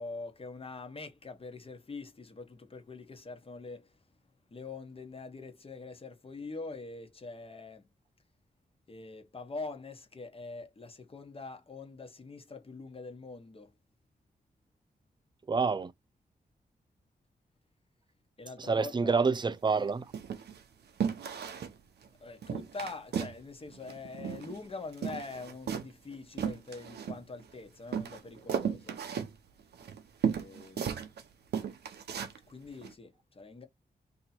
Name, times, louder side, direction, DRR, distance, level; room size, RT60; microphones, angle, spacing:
voice 1, 0.0-3.9 4.5-7.9 8.9-13.7 18.4-19.2 22.2-29.0 30.2-31.0 32.5-33.7, left 3 dB, 35° left, 1.1 m, -44 dB
voice 2, 15.5-15.9 18.6-20.1, right 4 dB, 30° right, 0.4 m, -27 dB
sound 1, 19.5-19.7 20.1-20.6 21.0-21.8 22.0-22.1 22.4-23.4 23.7-24.7 24.9-27.5 27.9-31.2 31.5-32.4 32.8-32.9, right 7 dB, 85° right, 0.6 m, -35 dB
2.9 x 2.8 x 4.3 m
cardioid pair, 85°, 17 cm